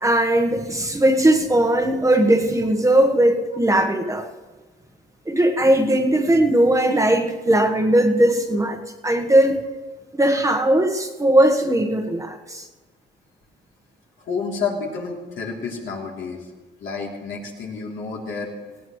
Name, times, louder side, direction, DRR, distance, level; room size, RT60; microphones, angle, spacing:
voice 1, 0.0-4.3 5.3-9.6 10.1-12.6, right 1 dB, 15° right, 3 dB, 1.3 m, -19 dB
voice 2, 14.2-16.4 16.8-18.5, left 5 dB, 75° left, -2 dB, 3.2 m, -29 dB
18.5 x 16.5 x 3.2 m, 1.3 s
cardioid pair, 90°, 20 cm